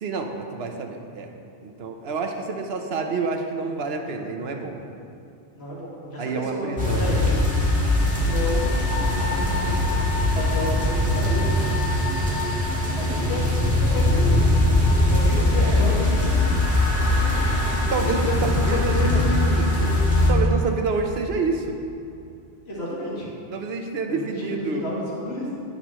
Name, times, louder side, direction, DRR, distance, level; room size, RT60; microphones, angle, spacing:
voice 1, 0.0-1.3 1.6-4.8 6.2-7.1 15.6-15.9 17.9-18.2 18.7-19.7 20.3-21.8 23.5-24.9, right 4 dB, 60° right, 4 dB, 1.0 m, -28 dB
voice 2, 5.6-7.3 8.1-8.8 9.2-11.5 12.9-13.4 13.7-14.5 15.1-16.5 16.8-17.5 18.2-19.9 22.6-23.3 24.1-25.5, left 1 dB, 60° left, -6 dB, 2.1 m, -31 dB
sound 1, 6.8-20.3, left 1 dB, 5° right, 1.7 m, -21 dB
16.0 x 5.6 x 3.0 m, 2.5 s
omnidirectional pair, 1.2 m